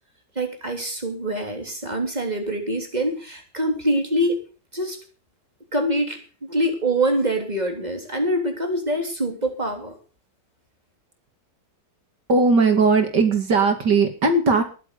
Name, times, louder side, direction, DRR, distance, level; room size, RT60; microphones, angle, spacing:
voice 1, 0.3-4.4 4.7-5.0 5.7-10.0, right 1 dB, 25° right, 4 dB, 3.4 m, -25 dB
voice 2, 12.3-14.6, right 4 dB, 75° right, 5 dB, 3.1 m, -18 dB
20.5 x 8.0 x 6.8 m, 0.37 s
omnidirectional pair, 1.8 m